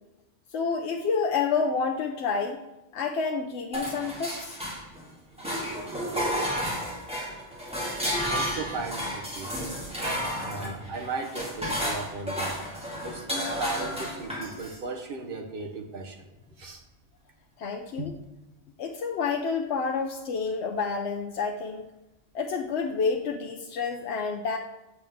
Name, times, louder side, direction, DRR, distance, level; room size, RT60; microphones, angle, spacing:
voice 1, 0.5-2.6 2.9-4.6 17.6-18.1 18.8-21.9 22.3-24.6, left 5 dB, 70° left, 2 dB, 0.9 m, -29 dB
sound 1, 3.7-5.1 5.4-14.8, equal, 5° right, 1.9 m, -32 dB
voice 2, 8.2-9.6 10.4-12.7 13.0-16.3 16.6-16.8 18.0-18.1, right 3 dB, 50° right, 4 dB, 1.1 m, -36 dB
8.4 x 7.1 x 3.5 m, 0.99 s
omnidirectional pair, 1.2 m